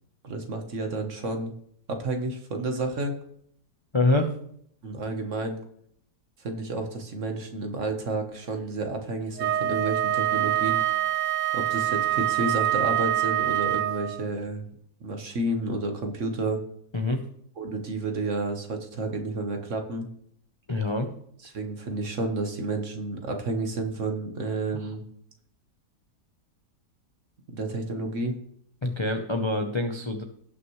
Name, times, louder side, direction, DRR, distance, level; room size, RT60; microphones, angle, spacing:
voice 1, 0.2-1.5 1.9-3.2 4.8-5.6 6.4-11.2 11.5-14.7 15.0-16.6 17.6-20.1 21.4-25.0 27.5-28.4, right 2 dB, 50° right, 5 dB, 1.5 m, -31 dB
voice 2, 3.9-4.3 16.9-17.2 20.7-21.1 28.8-30.2, left 2 dB, 30° left, 4 dB, 0.5 m, -25 dB
Wind instrument woodwind instrument, 9.4-14.3, right 13 dB, 70° right, 0.8 m, -25 dB
18.0 x 6.1 x 3.2 m, 0.66 s
omnidirectional pair, 1.8 m